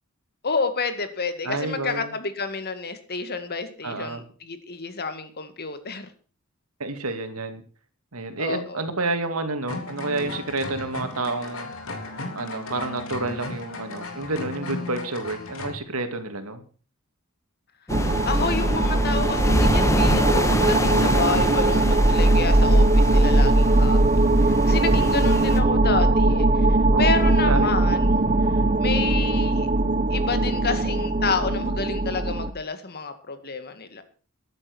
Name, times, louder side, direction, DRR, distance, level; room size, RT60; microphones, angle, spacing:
voice 1, 0.4-6.1 8.4-8.8 18.2-28.2 28.5-29.7 30.1-34.0, left 4 dB, 50° left, 10 dB, 2.1 m, -30 dB
voice 2, 1.4-2.1 3.8-4.2 6.8-7.6 8.1-11.7 12.4-16.6 24.6-25.2 26.9-27.7, right 2 dB, 90° right, 8 dB, 2.5 m, -29 dB
sound 1, 9.7-15.8, left 2 dB, 70° left, 3.6 m, -35 dB
sound 2, 17.9-25.6, left 1 dB, 15° left, 1.5 m, -27 dB
sound 3, 17.9-32.5, right 2 dB, 35° right, 1.0 m, -20 dB
14.0 x 11.0 x 6.3 m, 0.41 s
head